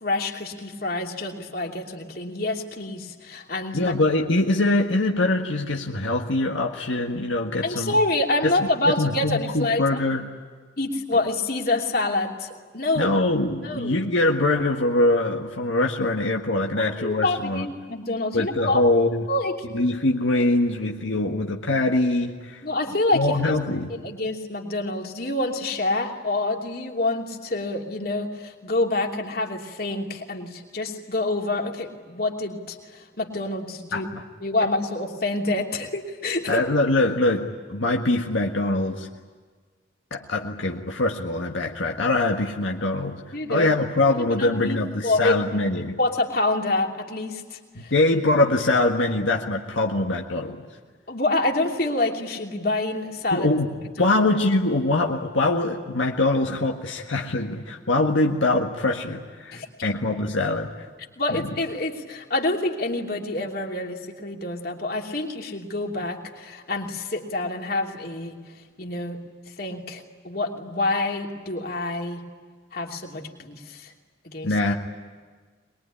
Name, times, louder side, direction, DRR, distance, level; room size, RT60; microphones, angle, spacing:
voice 1, 0.0-3.9 7.6-10.0 10.8-13.2 13.6-14.0 16.8-18.8 19.3-19.5 22.6-23.5 23.9-34.1 34.4-36.6 43.3-43.7 44.2-45.4 46.0-47.9 51.1-53.5 54.0-54.1 59.5-59.7 61.2-68.4 68.8-69.2 69.6-72.3 72.7-73.9 74.2-74.5, left 2 dB, 50° left, 1 dB, 2.9 m, -27 dB
voice 2, 3.7-8.0 8.4-8.5 9.0-10.2 13.0-17.7 18.3-19.2 19.7-22.6 23.1-23.9 33.9-34.2 36.5-39.1 40.1-46.0 47.8-50.6 53.3-53.7 54.0-60.9 61.3-61.4 74.4-74.7, left 2 dB, 85° left, 1 dB, 1.7 m, -23 dB
23.0 x 22.0 x 10.0 m, 1.5 s
head